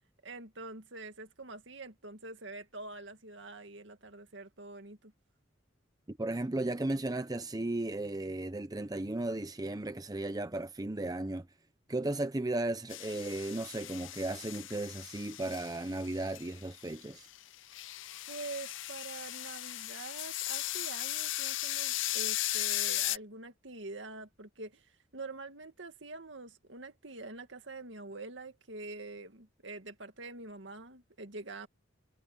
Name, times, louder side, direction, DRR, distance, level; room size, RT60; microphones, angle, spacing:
voice 1, 0.2-5.1 18.3-31.7, right 3 dB, 70° right, 2.2 m, -45 dB
voice 2, 6.1-11.5 11.9-17.3, right 2 dB, 20° right, 0.7 m, -35 dB
sound 1, 12.9-16.9 17.3-23.2, left 15 dB, 80° left, 0.6 m, -37 dB
head